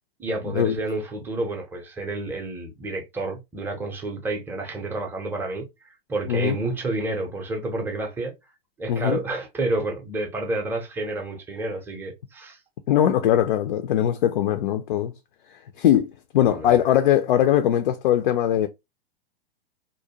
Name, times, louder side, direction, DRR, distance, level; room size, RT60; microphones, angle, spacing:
voice 1, 0.2-8.3 8.8-12.6 16.5-16.8, right 2 dB, 5° right, 0.5 m, -30 dB
voice 2, 6.3-6.6 8.9-9.2 12.9-15.1 15.5-18.7, left 11 dB, 55° left, 0.4 m, -21 dB
2.5 x 2.1 x 2.8 m
hypercardioid pair, 110°, 30 cm